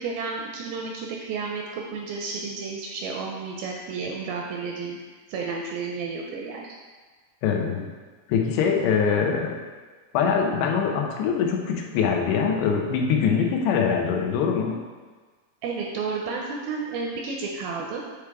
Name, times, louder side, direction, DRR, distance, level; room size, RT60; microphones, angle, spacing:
voice 1, 0.0-5.0 5.3-6.7 15.6-18.0, right 4 dB, 80° right, 0 dB, 2.1 m, -32 dB
voice 2, 7.4-7.9 8.3-9.6 10.1-14.8, left 6 dB, 90° left, 1 dB, 2.9 m, -23 dB
8.4 x 3.4 x 4.7 m, 1.4 s
omnidirectional pair, 4.7 m